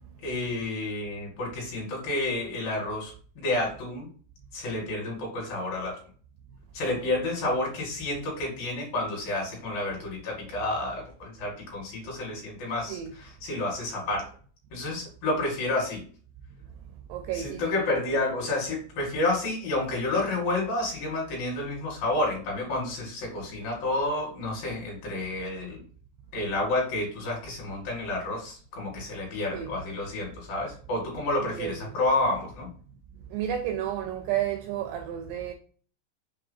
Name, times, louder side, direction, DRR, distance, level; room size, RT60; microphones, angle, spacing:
voice 1, 0.2-4.1 4.5-6.0 6.7-14.3 14.7-16.0 17.3-25.8 26.3-32.7, left 2 dB, 55° left, 3.5 m, -30 dB
voice 2, 17.1-18.0 29.5-29.8 31.4-31.9 33.3-35.5, right 10 dB, 85° right, 2.4 m, -32 dB
7.0 x 2.7 x 5.5 m
omnidirectional pair, 5.4 m